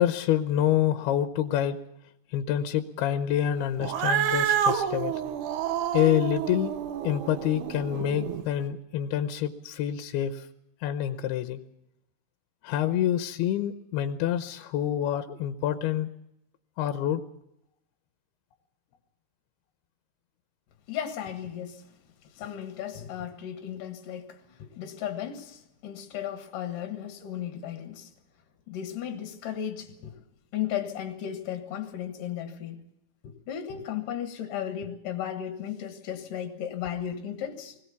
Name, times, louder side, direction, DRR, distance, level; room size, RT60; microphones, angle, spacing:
voice 1, 0.0-1.8 2.3-5.2 5.9-6.7 7.0-10.5 10.8-11.6 12.6-16.1 16.8-17.2, left 11 dB, 80° left, 2.8 m, -27 dB
Cat, 3.8-8.4, right 9 dB, 65° right, 2.1 m, -29 dB
voice 2, 20.9-21.9 22.4-28.1 28.7-30.2 30.5-32.8 33.2-37.8, left 10 dB, 60° left, 2.8 m, -35 dB
21.0 x 17.5 x 7.1 m
omnidirectional pair, 4.6 m